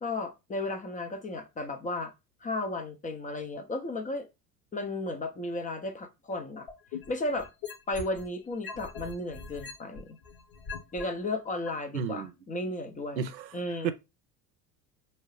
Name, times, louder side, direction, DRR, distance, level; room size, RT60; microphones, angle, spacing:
voice 1, 0.0-2.1 2.4-4.3 4.7-6.7 7.1-7.5 7.9-10.2 10.9-13.2 13.5-13.9, left 2 dB, 15° left, 0.5 m, -34 dB
sound 1, 6.7-8.3 8.6-11.0 11.7-11.8, left 5 dB, 50° left, 1.1 m, -40 dB
voice 2, 11.9-12.3 13.2-13.5 13.8-13.9, right 7 dB, 85° right, 0.6 m, -31 dB
4.5 x 2.9 x 3.0 m
figure-of-eight pair, 70°, 50 cm